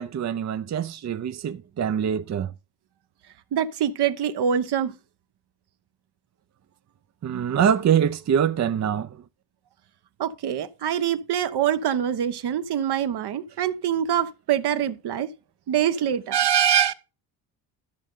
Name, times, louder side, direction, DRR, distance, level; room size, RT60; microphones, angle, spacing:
voice 1, 0.0-2.5 7.2-9.1, right 8 dB, 35° right, 0.6 m, -24 dB
voice 2, 3.5-4.9 10.2-15.3 15.7-16.9, right 9 dB, 60° right, 1.0 m, -24 dB
13.0 x 6.4 x 3.8 m
supercardioid pair, 70°, 46 cm